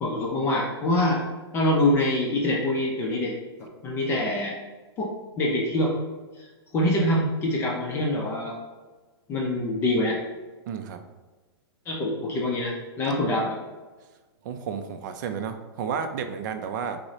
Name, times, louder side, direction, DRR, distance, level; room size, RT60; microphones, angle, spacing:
voice 1, 0.0-1.2 1.5-4.6 5.0-5.9 6.4-8.6 9.3-10.2 11.9-13.6, left 1 dB, 20° left, -3 dB, 0.4 m, -25 dB
voice 2, 10.7-11.1 14.4-17.0, right 6 dB, 45° right, 7 dB, 0.4 m, -32 dB
5.9 x 2.0 x 2.7 m, 1.3 s
hypercardioid pair, 150°, 13 cm